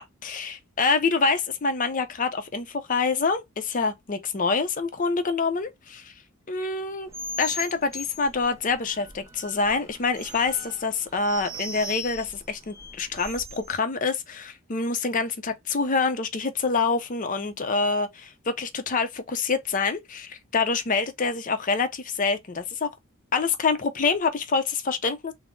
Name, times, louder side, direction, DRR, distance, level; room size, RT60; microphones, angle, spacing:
voice 1, 0.0-6.1 6.5-7.1 7.4-22.9 23.3-25.3, left 4 dB, 40° left, 0.5 m, -26 dB
sound 1, 7.1-13.7, left 1 dB, 15° right, 0.6 m, -38 dB
3.6 x 2.0 x 3.6 m
head